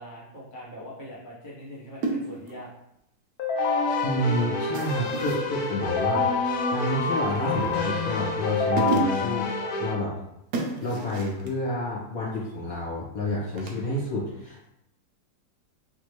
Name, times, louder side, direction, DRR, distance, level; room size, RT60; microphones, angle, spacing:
voice 1, 0.0-2.7 9.2-9.4, equal, 30° left, -8 dB, 1.0 m, -42 dB
sound 1, 2.0-2.6 4.7-5.5 7.3-7.9 8.5-8.6 8.8-9.4 10.5-11.5 13.6-13.8, right 3 dB, 65° right, 1.0 m, -31 dB
Keyboard (musical), 3.4-9.9, left 4 dB, 70° left, 0.9 m, -27 dB
voice 2, 4.0-6.3 6.7-9.4 9.8-10.1 10.8-14.7, left 1 dB, 45° left, -7 dB, 1.5 m, -29 dB
4.3 x 3.3 x 3.2 m, 0.82 s
omnidirectional pair, 2.3 m